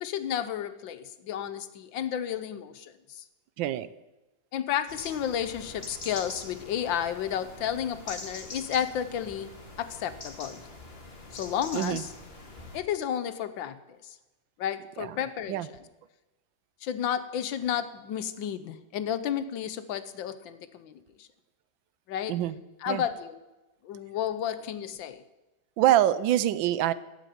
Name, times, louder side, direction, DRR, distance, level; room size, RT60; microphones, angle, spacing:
voice 1, 0.0-3.2 4.5-9.5 9.8-10.6 11.3-12.0 12.7-13.8 14.6-15.6 16.8-21.3 22.1-22.3 22.8-23.3 23.8-25.2, left 9 dB, 80° left, 12 dB, 1.6 m, -32 dB
sound 1, 4.9-12.8, left 2 dB, 30° left, 2.0 m, -44 dB
voice 2, 11.7-12.0 15.0-15.2 15.5-15.7 22.3-22.6 22.9-23.0 25.8-26.9, right 12 dB, 85° right, 17 dB, 1.4 m, -25 dB
11.5 x 8.3 x 9.1 m, 1.0 s
omnidirectional pair, 2.0 m